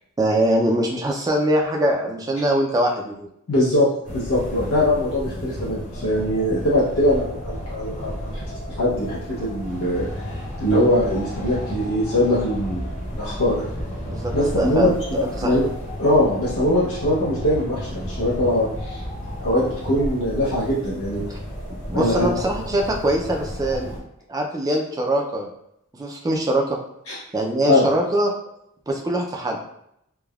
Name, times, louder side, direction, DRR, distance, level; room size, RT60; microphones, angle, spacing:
voice 1, 0.2-3.3 14.0-14.9 15.2-15.5 21.9-23.9 24.3-25.5 26.0-26.8 27.3-28.3 28.9-29.6, right 1 dB, 15° right, 1 dB, 0.3 m, -22 dB
voice 2, 3.5-8.4 8.8-10.3 10.6-12.8 13.1-13.6 14.3-14.9 15.4-15.7 16.0-19.0 19.4-21.2 21.9-22.3 27.1-27.2 27.7-27.8, left 1 dB, 85° left, -8 dB, 0.7 m, -21 dB
sound 1, 4.0-24.0, equal, 35° left, 0.7 m, -32 dB
3.2 x 2.1 x 2.3 m, 0.76 s
head